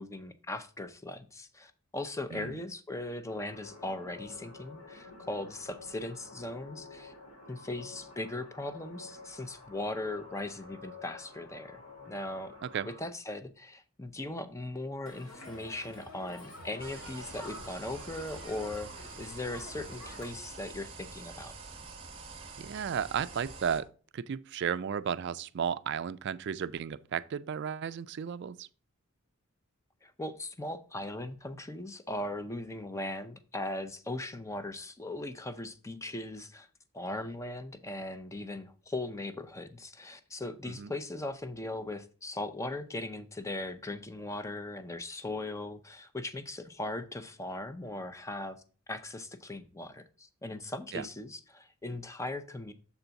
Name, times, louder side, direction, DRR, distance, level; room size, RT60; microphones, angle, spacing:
voice 1, 0.0-7.1 7.5-11.8 12.1-12.6 13.0-21.5 30.0-36.7 36.9-48.6 48.9-52.7, left 2 dB, 15° left, 0.5 m, -39 dB
sound 1, 3.3-13.1, left 3 dB, 70° left, 2.4 m, -50 dB
Crowd, 15.1-20.3, left 1 dB, 90° left, 2.4 m, -48 dB
sound 2, 16.8-23.8, right 4 dB, 25° right, 1.0 m, -47 dB
voice 2, 22.6-23.9 24.1-28.7 40.7-40.9 50.9-51.0, right 7 dB, 50° right, 0.3 m, -34 dB
7.0 x 4.0 x 5.7 m
head